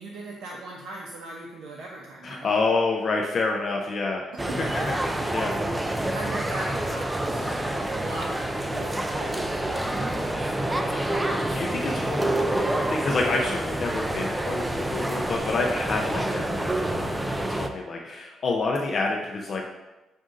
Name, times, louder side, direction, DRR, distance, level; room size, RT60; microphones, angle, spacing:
voice 1, 0.0-2.6 4.3-4.9 6.1-9.5, right 2 dB, 75° right, -2 dB, 0.6 m, -38 dB
voice 2, 2.2-4.3 4.6-4.7 5.3-5.7 10.9-19.7, left 3 dB, 50° left, -1 dB, 0.5 m, -28 dB
sound 1, 4.4-17.7, right 1 dB, 10° right, 0.3 m, -28 dB
sound 2, 8.7-17.0, left 2 dB, 85° left, 0.8 m, -46 dB
7.3 x 2.6 x 2.5 m, 1.0 s
cardioid pair, 90°, 0 cm